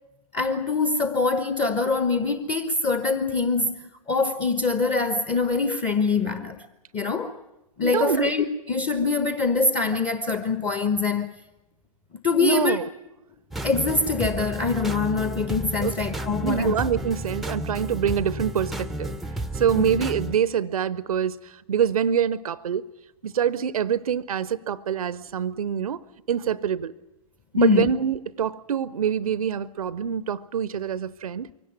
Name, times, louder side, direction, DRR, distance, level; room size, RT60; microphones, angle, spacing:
voice 1, 0.3-6.6 6.9-7.4 7.8-11.4 12.2-12.8 13.6-16.7 19.7-19.9 27.6-27.9, left 4 dB, 25° left, 10 dB, 1.2 m, -24 dB
voice 2, 7.8-8.3 12.4-12.8 15.8-15.9 16.4-19.2 19.5-22.9 23.2-26.9 27.5-31.5, right 8 dB, 65° right, 18 dB, 0.7 m, -25 dB
sound 1, 13.5-20.4, right 1 dB, ahead, 0.8 m, -32 dB
24.0 x 17.5 x 9.4 m, 0.97 s
figure-of-eight pair, 110°, 20 cm